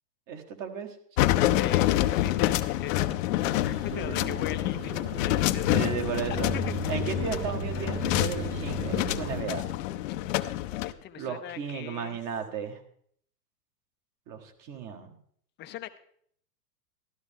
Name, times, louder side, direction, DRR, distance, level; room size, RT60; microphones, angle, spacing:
voice 1, 0.3-1.3 3.9-4.4 5.7-6.5 6.9-9.7 11.2-12.8 14.3-15.2, right 7 dB, 40° right, 5 dB, 1.8 m, -35 dB
sound 1, 1.2-10.9, left 14 dB, 55° left, 0.7 m, -27 dB
voice 2, 1.5-5.9 6.3-7.0 10.8-12.2 15.6-16.0, left 12 dB, 25° left, 9 dB, 0.6 m, -39 dB
sound 2, 3.3-9.4, right 6 dB, 25° right, 0.7 m, -38 dB
13.0 x 12.5 x 3.6 m, 0.63 s
hypercardioid pair, 115°, 48 cm